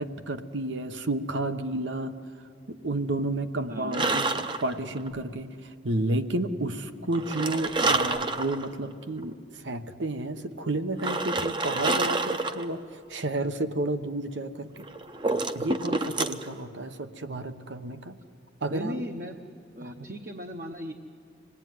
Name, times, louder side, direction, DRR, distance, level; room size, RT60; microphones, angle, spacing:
voice 1, 0.0-2.1 2.7-14.9 15.5-18.2 18.6-19.0 19.8-20.1, right 2 dB, 80° right, 9 dB, 1.1 m, -31 dB
voice 2, 3.7-4.1 18.7-19.4 19.7-20.9, equal, 50° right, 3 dB, 1.0 m, -36 dB
sound 1, 3.9-5.1 7.1-8.7 9.2-9.3 11.0-12.6 14.8-16.5, right 3 dB, 25° right, 0.7 m, -28 dB
26.0 x 19.0 x 9.4 m, 2.4 s
head